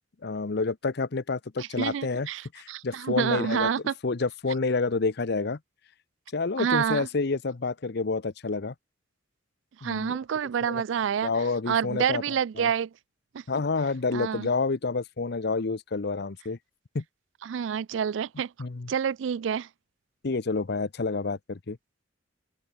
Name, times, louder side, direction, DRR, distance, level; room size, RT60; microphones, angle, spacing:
voice 1, 0.2-3.7 4.0-5.6 6.3-8.7 9.8-10.2 10.6-10.8 11.2-12.2 12.5-12.7 13.5-16.6 16.9-17.0 18.6-18.9 20.2-21.8, left 3 dB, 55° left, 0.7 m, -29 dB
voice 2, 1.6-3.9 6.6-7.1 9.8-11.3 11.7-12.9 13.3-13.4 14.1-14.5 17.4-18.5 18.9-19.7, right 7 dB, 70° right, 0.4 m, -28 dB
head